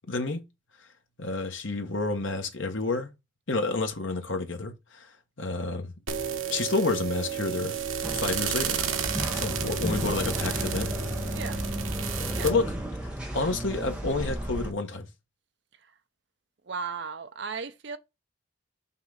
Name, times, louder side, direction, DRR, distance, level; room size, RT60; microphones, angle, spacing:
voice 1, 0.1-0.4 1.2-3.1 3.5-5.9 6.5-7.7 8.1-8.9 9.3-10.9 12.2-12.8 13.0-15.1, left 3 dB, 75° left, 1.3 m, -30 dB
sound 1, 6.1-12.5, right 7 dB, 85° right, 1.1 m, -32 dB
sound 2, 8.0-14.7, equal, 5° right, 1.3 m, -33 dB
voice 2, 11.3-11.6 12.3-12.5 16.7-18.0, right 5 dB, 60° right, 0.6 m, -36 dB
5.8 x 3.7 x 5.8 m
head